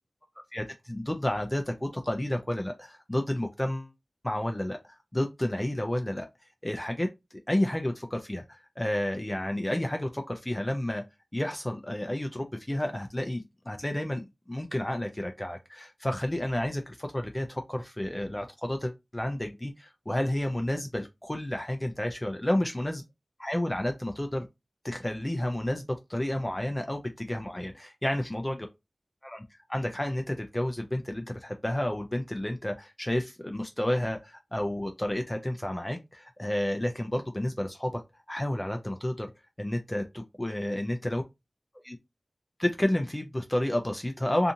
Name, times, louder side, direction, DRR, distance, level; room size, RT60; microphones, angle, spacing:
voice 1, 0.5-3.9 4.2-6.3 6.6-7.1 7.5-11.0 11.3-23.0 23.4-24.5 24.8-25.8 26.1-28.7 29.2-38.0 38.3-39.3 39.6-41.2 41.8-42.0 42.6-44.5, left 1 dB, 20° left, 0.4 m, -31 dB
2.5 x 2.4 x 2.7 m
wide cardioid pair, 65°, 0 cm